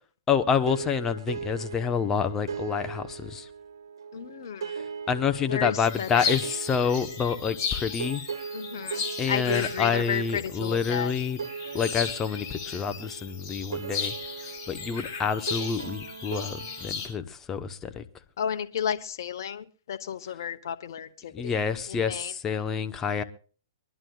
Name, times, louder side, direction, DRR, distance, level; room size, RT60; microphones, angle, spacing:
voice 1, 0.3-3.5 5.1-8.2 9.2-11.4 11.7-14.1 14.7-18.0 21.3-23.2, left 6 dB, 20° left, 0.9 m, -28 dB
sound 1, 0.6-17.1, right 6 dB, 80° right, 1.5 m, -39 dB
voice 2, 4.1-4.8 5.5-6.3 8.5-11.1 18.4-22.3, left 8 dB, 65° left, 1.0 m, -33 dB
sound 2, 5.8-17.1, left 6 dB, 40° left, 7.5 m, -36 dB
25.0 x 11.0 x 2.3 m
hypercardioid pair, 140°, 2 cm